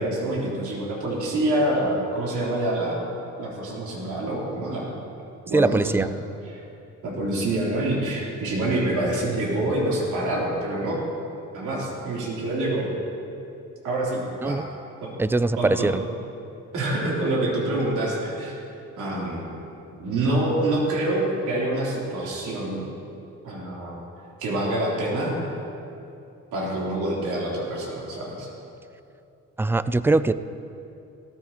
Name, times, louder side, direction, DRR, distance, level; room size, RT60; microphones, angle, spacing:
voice 1, 0.0-3.1 3.4-4.9 5.5-6.1 6.5-6.6 7.0-11.0 11.5-12.9 13.8-14.6 15.0-15.1 15.6-15.9 16.7-18.6 19.0-19.4 20.0-22.8 23.4-24.0 24.4-25.4 26.5-28.5, right 1 dB, 80° right, -5 dB, 3.7 m, -26 dB
voice 2, 5.5-6.1 14.4-14.6 15.2-16.0 29.6-30.3, right 3 dB, 10° right, 14 dB, 0.3 m, -21 dB
18.0 x 14.5 x 3.0 m, 2.7 s
cardioid pair, 90°, 30 cm